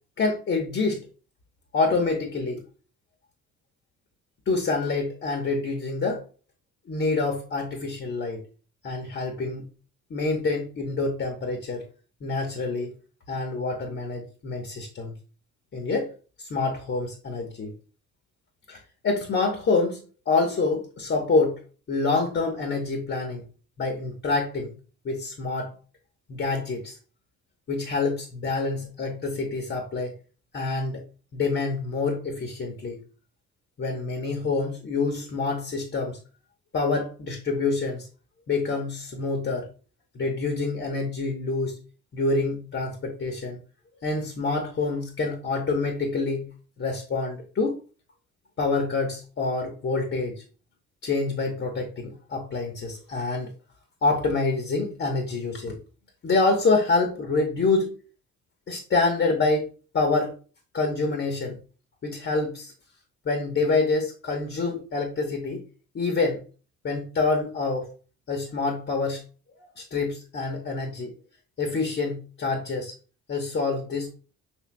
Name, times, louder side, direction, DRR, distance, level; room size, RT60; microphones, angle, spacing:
voice 1, 0.2-1.0 1.7-2.6 4.5-6.2 6.9-8.4 8.8-9.7 10.1-11.8 12.2-12.9 13.3-15.1 15.7-17.7 18.7-21.6 21.9-23.4 23.8-24.7 25.0-25.7 26.3-27.0 27.7-30.1 30.5-31.0 31.3-33.0 33.8-36.2 36.7-38.1 38.5-39.7 40.1-41.8 42.1-43.6 44.0-46.5 46.8-47.8 48.6-50.4 51.0-53.5 54.0-55.8 56.2-57.9 58.7-59.7 59.9-60.4 60.7-61.6 62.0-62.7 63.2-65.6 65.9-66.4 66.8-67.9 68.3-69.2 69.8-71.1 71.6-72.9 73.3-74.1, left 3 dB, 40° left, 3 dB, 1.0 m, -26 dB
6.2 x 3.2 x 2.2 m, 0.36 s
cardioid pair, 90°, 30 cm